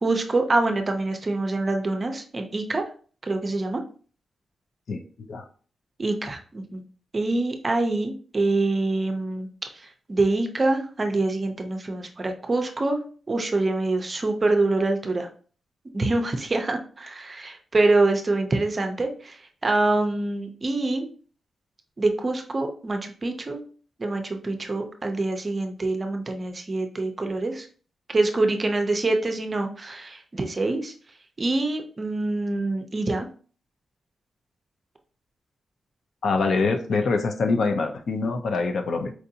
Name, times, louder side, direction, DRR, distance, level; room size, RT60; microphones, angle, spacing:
voice 1, 0.0-2.8 3.2-3.8 6.0-6.8 7.1-9.5 9.7-13.0 13.3-15.3 15.9-21.1 22.0-23.6 24.0-27.7 28.1-30.9 31.4-33.3, right 2 dB, 30° right, 4 dB, 0.5 m, -25 dB
voice 2, 4.9-5.4 36.2-39.1, left 4 dB, 60° left, 7 dB, 0.5 m, -25 dB
4.4 x 2.5 x 2.7 m, 0.41 s
wide cardioid pair, 145°, 0 cm